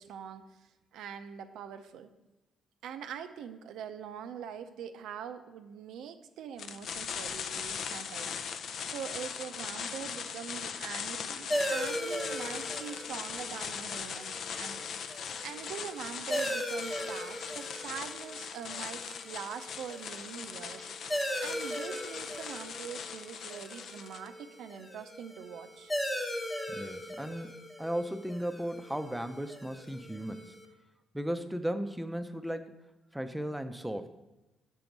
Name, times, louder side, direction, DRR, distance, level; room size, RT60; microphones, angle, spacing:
voice 1, 0.0-2.1 2.8-8.4 8.9-20.9 21.4-25.9, right 8 dB, 85° right, 9 dB, 0.5 m, -43 dB
sound 1, 6.6-24.3, left 7 dB, 65° left, 0.4 m, -40 dB
sound 2, 11.5-30.6, equal, 20° left, 1.1 m, -39 dB
voice 2, 26.7-30.6 31.1-32.7 33.1-34.3, equal, 5° right, 8 dB, 0.5 m, -36 dB
6.2 x 4.5 x 5.2 m, 1.0 s
cardioid pair, 90°, 0 cm